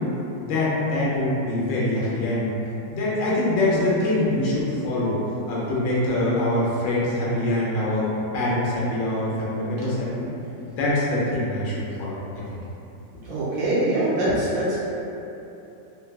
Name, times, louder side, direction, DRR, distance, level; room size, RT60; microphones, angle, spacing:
voice 1, 0.4-2.5 2.9-5.2 5.5-10.3 10.7-12.1 14.3-14.4, left 1 dB, 75° left, -6 dB, 1.3 m, -24 dB
voice 2, 13.3-14.8, right 1 dB, 70° right, -9 dB, 1.0 m, -23 dB
3.8 x 2.1 x 2.2 m, 2.9 s
omnidirectional pair, 2.0 m